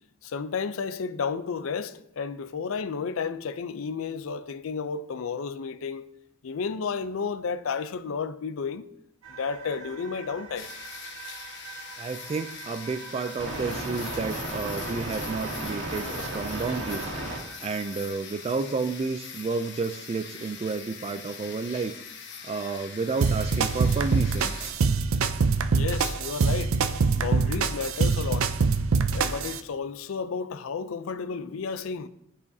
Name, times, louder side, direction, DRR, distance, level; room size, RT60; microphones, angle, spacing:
voice 1, 0.2-6.1 6.4-8.9 9.4-10.7 21.7-21.8 25.7-26.8 27.2-28.5 29.1-32.1, left 5 dB, 75° left, 0.4 m, -32 dB
sound 1, 9.2-18.2, right 2 dB, 75° right, 1.6 m, -37 dB
sound 2, 10.6-24.7, left 6 dB, 60° left, 1.0 m, -42 dB
voice 2, 12.0-17.1 17.6-21.9 22.4-24.6, right 4 dB, 30° right, 0.3 m, -31 dB
sound 3, 23.2-29.6, right 4 dB, 90° right, 0.5 m, -24 dB
13.5 x 4.9 x 2.7 m
head